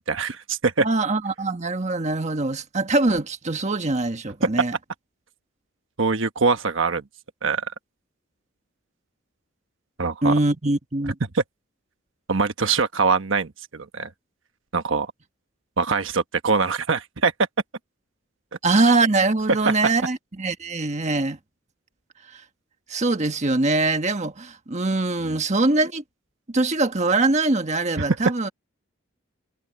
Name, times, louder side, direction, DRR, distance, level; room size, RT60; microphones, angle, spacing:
voice 1, 0.0-0.9 6.0-7.0 7.4-7.6 10.0-10.3 11.3-11.4 12.3-14.1 14.7-15.1 15.8-17.3 19.6-19.7 25.3-25.4, right 4 dB, 75° right, 1.2 m, -23 dB
voice 2, 0.8-4.7 10.2-11.1 18.6-21.4 22.3-22.4 22.9-26.0 26.5-28.5, right 2 dB, 35° right, 1.4 m, -23 dB
head